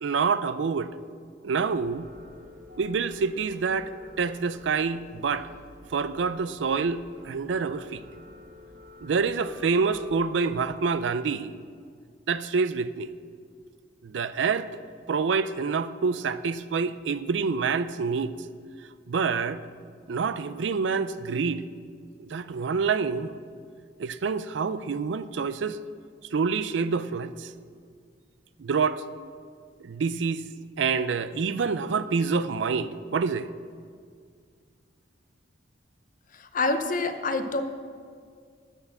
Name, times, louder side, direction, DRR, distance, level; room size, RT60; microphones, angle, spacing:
voice 1, 0.0-1.0 1.4-2.1 2.8-3.9 4.2-5.5 5.9-8.0 9.0-11.5 12.3-13.1 14.0-14.7 15.1-18.3 19.1-19.6 20.1-21.6 22.2-23.3 24.0-25.8 26.3-27.5 28.6-29.0 29.8-30.4 30.8-33.5, right 5 dB, 80° right, 0.4 m, -27 dB
sound 1, 1.7-10.6, left 2 dB, 50° right, 1.8 m, -50 dB
voice 2, 36.3-37.6, left 3 dB, 45° left, 0.7 m, -27 dB
13.0 x 4.4 x 7.8 m
head